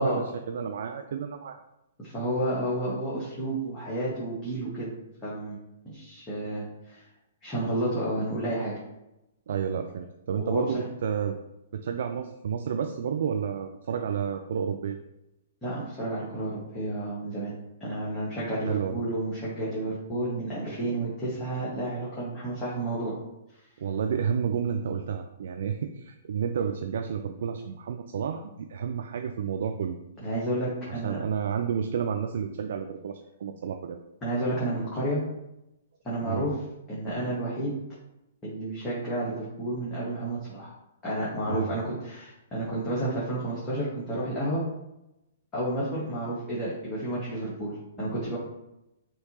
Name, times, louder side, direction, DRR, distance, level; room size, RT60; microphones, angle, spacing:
voice 1, 0.0-1.6 9.5-11.4 11.7-15.0 18.7-19.0 23.8-30.0 30.9-34.0 36.2-36.5 41.4-41.7, right 7 dB, 60° right, 6 dB, 0.3 m, -31 dB
voice 2, 2.0-4.9 5.2-5.6 5.8-7.0 7.4-8.7 10.4-10.6 15.6-17.5 17.8-23.1 30.2-31.2 34.2-35.2 36.0-36.6 36.9-37.7 38.4-40.7 41.0-44.6 45.5-48.4, right 1 dB, 20° left, -8 dB, 1.5 m, -31 dB
6.4 x 2.9 x 2.8 m, 0.91 s
figure-of-eight pair, 115°, 0 cm